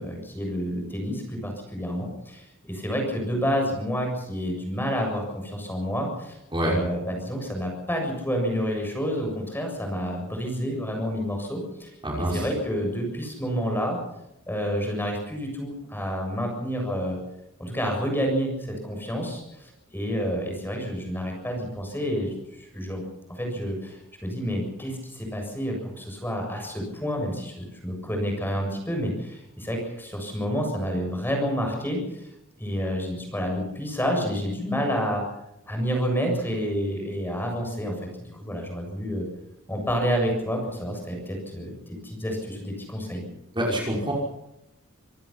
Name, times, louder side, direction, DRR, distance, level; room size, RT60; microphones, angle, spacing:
voice 1, 0.0-6.4 6.6-11.9 12.3-14.0 14.5-17.2 17.6-22.3 22.6-23.0 23.3-32.2 32.6-35.2 35.7-39.3 39.7-43.2, equal, 10° left, 2 dB, 7.3 m, -29 dB
voice 2, 12.0-12.5 43.5-44.1, equal, 25° right, -2 dB, 5.8 m, -26 dB
26.5 x 18.5 x 5.8 m, 0.83 s
head